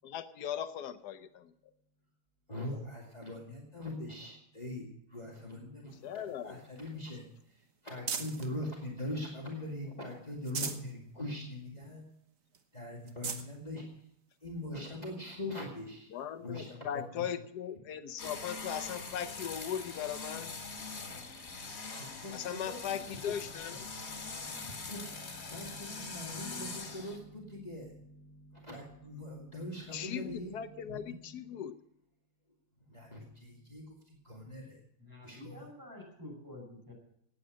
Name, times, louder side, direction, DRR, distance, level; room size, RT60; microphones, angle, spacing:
voice 1, 0.0-1.5 6.0-6.6 16.1-20.5 22.3-23.9 29.9-31.7, left 9 dB, 90° left, 11 dB, 1.3 m, -38 dB
voice 2, 2.5-12.1 12.7-14.1 14.4-16.1 16.4-17.3 22.0-31.6 32.7-34.8 35.2-35.7, left 1 dB, 25° left, -2 dB, 2.3 m, -43 dB
sound 1, 5.9-8.5 9.1-9.8 10.2-10.9 11.4-11.5 11.8-11.9 12.5-12.6 13.0-13.5 14.3-14.4 16.2-16.3, right 6 dB, 60° right, 1.5 m, -41 dB
sound 2, 18.2-27.2, left 4 dB, 65° left, 2.5 m, -43 dB
voice 3, 35.0-36.9, left 1 dB, 10° right, -1 dB, 5.7 m, -48 dB
17.5 x 8.9 x 6.3 m, 0.76 s
omnidirectional pair, 1.7 m